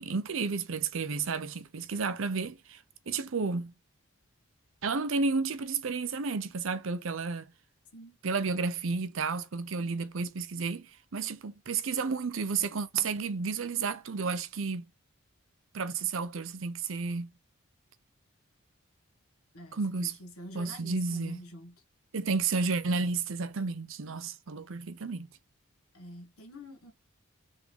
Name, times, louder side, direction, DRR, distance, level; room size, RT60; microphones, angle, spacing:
voice 1, 0.0-3.7 4.8-7.5 8.2-14.8 15.7-17.3 19.7-20.2 20.5-21.4 22.1-25.3, right 4 dB, 70° right, 0.6 m, -32 dB
voice 2, 19.5-21.8 25.9-26.9, left 1 dB, 85° left, 1.4 m, -47 dB
3.8 x 3.6 x 3.2 m
head